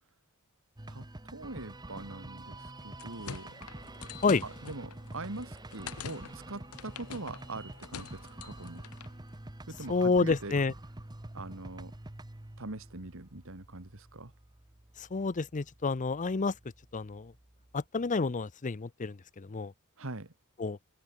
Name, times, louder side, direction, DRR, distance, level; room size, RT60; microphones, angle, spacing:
sound 1, 0.8-17.9, right 1 dB, 20° right, 1.0 m, -48 dB
voice 1, 0.9-3.5 4.4-8.8 9.7-10.5 11.3-11.9 12.6-14.3 20.0-20.3, right 2 dB, 65° right, 2.2 m, -42 dB
sound 2, 2.8-9.2, left 6 dB, 80° left, 1.0 m, -46 dB
voice 2, 9.9-10.7 15.0-16.5 16.9-17.3 17.7-19.7 20.6-20.8, left 4 dB, 35° left, 0.6 m, -29 dB
head